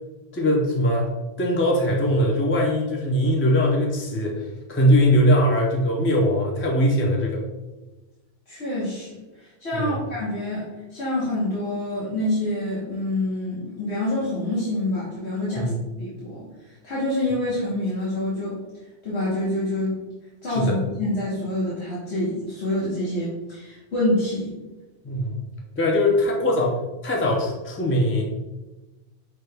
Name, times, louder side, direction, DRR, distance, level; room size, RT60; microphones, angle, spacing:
voice 1, 0.3-1.1 1.4-7.4 9.7-10.0 15.6-15.8 20.5-20.8 25.0-25.4 25.8-26.8 27.0-28.3, equal, 20° left, -1 dB, 0.3 m, -21 dB
voice 2, 8.5-15.7 16.0-16.5 16.8-18.6 19.0-20.0 20.4-24.5, left 1 dB, 90° left, -8 dB, 1.4 m, -27 dB
5.9 x 2.2 x 3.3 m, 1.1 s
omnidirectional pair, 1.1 m